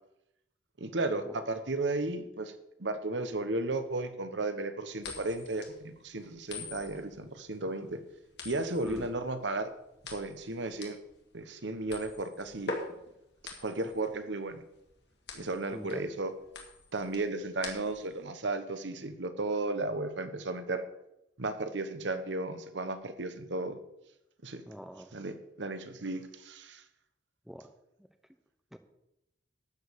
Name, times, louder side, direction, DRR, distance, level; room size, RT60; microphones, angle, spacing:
voice 1, 0.8-8.0 8.4-9.7 10.1-11.0 11.3-12.7 13.6-14.6 15.3-16.3 16.9-20.8 21.4-23.8 24.4-24.6 25.1-26.8, right 2 dB, 75° right, 9 dB, 1.1 m, -34 dB
sound 1, 5.0-18.2, left 3 dB, 65° left, 2.2 m, -44 dB
voice 2, 24.7-25.1 27.5-27.7 28.7-28.8, equal, ahead, 8 dB, 0.6 m, -43 dB
12.0 x 5.2 x 8.1 m, 0.85 s
head